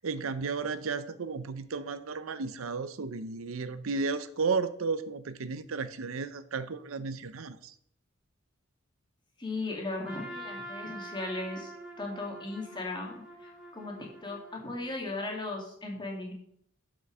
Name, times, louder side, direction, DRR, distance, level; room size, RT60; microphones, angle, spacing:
voice 1, 0.0-7.7, right 4 dB, 85° right, 13 dB, 0.6 m, -33 dB
voice 2, 9.4-11.7 12.0-16.3, left 2 dB, 25° left, -1 dB, 2.2 m, -37 dB
Trumpet, 10.0-15.1, right 1 dB, 5° right, 2.0 m, -45 dB
7.6 x 6.1 x 6.1 m, 0.67 s
head